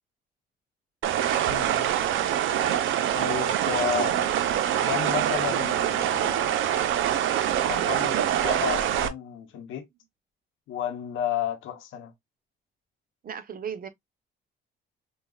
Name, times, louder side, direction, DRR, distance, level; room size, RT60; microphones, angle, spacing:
sound 1, 1.0-9.1, right 10 dB, 80° right, 0.6 m, -25 dB
voice 1, 1.5-1.9 3.1-4.3 4.8-6.6 7.7-9.9 10.7-12.1, left 10 dB, 85° left, 0.9 m, -32 dB
voice 2, 13.2-13.9, right 7 dB, 45° right, 0.8 m, -35 dB
5.1 x 2.3 x 2.3 m
cardioid pair, 90°, 20 cm